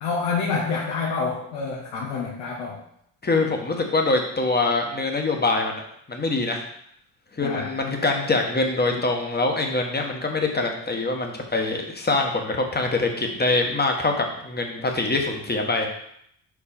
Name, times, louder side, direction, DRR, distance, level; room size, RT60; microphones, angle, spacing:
voice 1, 0.0-2.8 7.4-7.7, left 4 dB, 75° left, -4 dB, 1.4 m, -27 dB
voice 2, 3.2-5.8 6.1-6.6 7.3-15.9, left 3 dB, 20° left, 2 dB, 1.4 m, -24 dB
4.8 x 4.7 x 4.3 m, 0.71 s
hypercardioid pair, 60°, 50 cm